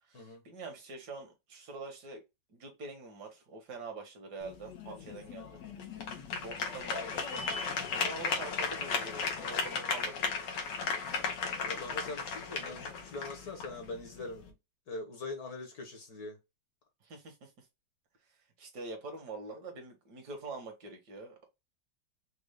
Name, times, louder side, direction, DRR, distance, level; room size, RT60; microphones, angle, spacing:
voice 1, 0.1-2.2 2.5-5.6 6.4-7.5 7.9-10.6 17.0-17.7 18.6-21.5, right 3 dB, 70° right, 1.9 m, -45 dB
sound 1, 4.4-14.5, left 5 dB, 90° left, 1.7 m, -36 dB
voice 2, 7.7-8.1 11.7-14.5 14.9-16.4, left 3 dB, 65° left, 1.7 m, -42 dB
5.2 x 2.4 x 3.4 m
omnidirectional pair, 1.8 m